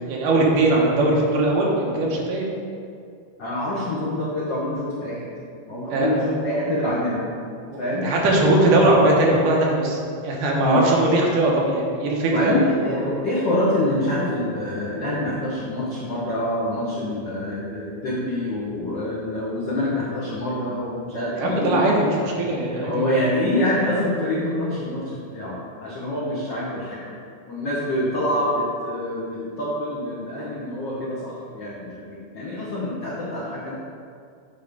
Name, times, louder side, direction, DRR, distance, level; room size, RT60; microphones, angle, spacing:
voice 1, 0.1-2.4 5.9-6.1 7.7-13.1 21.3-23.3, right 2 dB, 80° right, -2 dB, 2.6 m, -20 dB
voice 2, 3.4-5.3 5.7-7.2 7.8-8.1 10.6-10.8 12.3-21.8 22.8-27.1 27.5-33.7, left 1 dB, 85° left, -7 dB, 0.9 m, -26 dB
8.6 x 3.5 x 5.3 m, 2.4 s
omnidirectional pair, 3.7 m